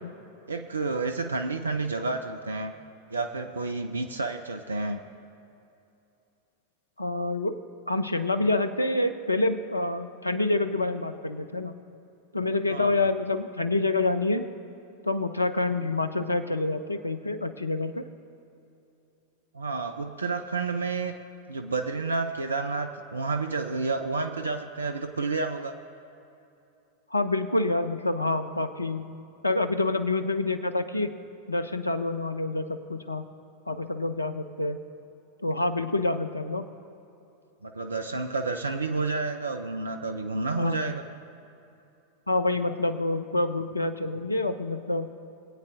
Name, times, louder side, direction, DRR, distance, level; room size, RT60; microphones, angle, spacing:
voice 1, 0.5-2.7 3.1-5.0 12.7-13.0 19.5-21.1 21.5-25.8 37.6-41.0, right 3 dB, 75° right, 6 dB, 0.5 m, -30 dB
voice 2, 7.0-7.5 7.9-11.8 12.3-14.5 15.0-18.0 27.1-29.1 29.4-31.1 31.5-33.3 33.7-34.8 35.4-36.7 40.6-40.8 42.3-45.1, left 2 dB, 80° left, 10 dB, 0.5 m, -27 dB
22.5 x 8.6 x 2.6 m, 2.7 s
figure-of-eight pair, 90°, 0 cm